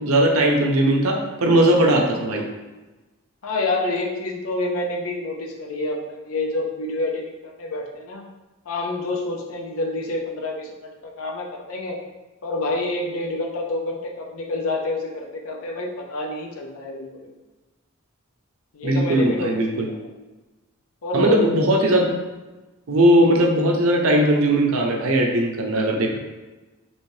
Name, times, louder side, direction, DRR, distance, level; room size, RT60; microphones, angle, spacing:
voice 1, 0.0-2.4 18.8-19.9 21.1-22.1 22.9-26.2, right 1 dB, 80° right, 1 dB, 0.6 m, -19 dB
voice 2, 3.4-7.3 7.6-8.2 8.7-12.0 12.4-17.3 18.7-19.5 19.8-20.0 21.0-21.6, left 2 dB, 85° left, 0 dB, 0.6 m, -27 dB
3.1 x 3.0 x 2.7 m, 1.2 s
head